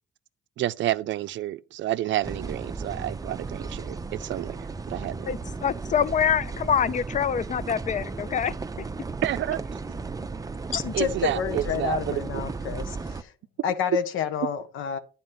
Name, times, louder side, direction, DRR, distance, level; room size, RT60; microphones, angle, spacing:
voice 1, 0.6-4.6 4.9-5.3 9.2-9.6 10.9-12.4, right 13 dB, 70° right, 0.5 m, -29 dB
sound 1, 2.2-13.2, right 4 dB, 20° right, 0.5 m, -35 dB
voice 2, 5.3-8.5, left 8 dB, 40° left, 0.5 m, -25 dB
voice 3, 10.7-13.3 13.6-15.0, left 8 dB, 90° left, 1.0 m, -29 dB
9.5 x 4.2 x 5.7 m
cardioid pair, 90°, 20 cm